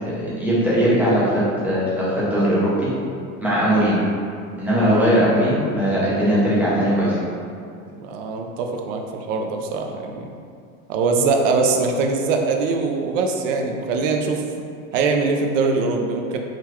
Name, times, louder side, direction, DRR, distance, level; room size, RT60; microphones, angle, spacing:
voice 1, 0.2-2.9 3.4-4.0 4.6-7.2, equal, 5° right, -9 dB, 0.4 m, -19 dB
voice 2, 7.9-10.3 10.9-14.4 14.9-16.4, right 4 dB, 70° right, 3 dB, 0.5 m, -22 dB
3.8 x 2.2 x 2.9 m, 2.3 s
supercardioid pair, 150°, 40 cm